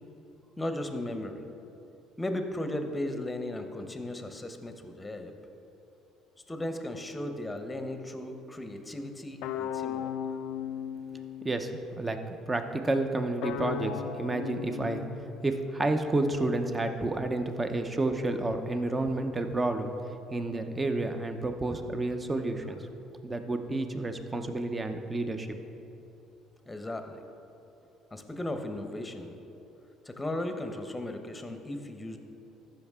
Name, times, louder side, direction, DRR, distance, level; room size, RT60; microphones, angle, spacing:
voice 1, 0.6-1.4 2.2-5.3 6.5-10.4 26.7-27.3 28.1-29.4 30.0-32.2, left 1 dB, 15° left, 6 dB, 0.9 m, -36 dB
sound 1, 9.4-11.7 13.4-15.8, left 8 dB, 80° left, 0.3 m, -36 dB
voice 2, 12.5-15.0 15.4-19.9 20.3-22.8 23.2-25.6, right 2 dB, 20° right, 7 dB, 0.7 m, -30 dB
14.0 x 5.8 x 3.6 m, 2.9 s
supercardioid pair, 90°, 0 cm